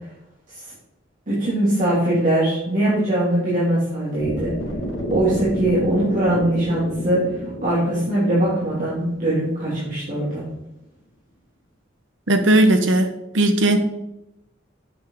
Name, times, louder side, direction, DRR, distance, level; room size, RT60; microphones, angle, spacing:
voice 1, 1.3-4.5 5.1-7.2 7.6-10.4, right 1 dB, 40° right, -7 dB, 2.6 m, -21 dB
sound 1, 4.2-10.3, equal, 80° left, 2.2 m, -31 dB
voice 2, 12.3-13.8, right 1 dB, 70° right, 7 dB, 1.1 m, -17 dB
8.1 x 7.0 x 3.8 m, 0.89 s
head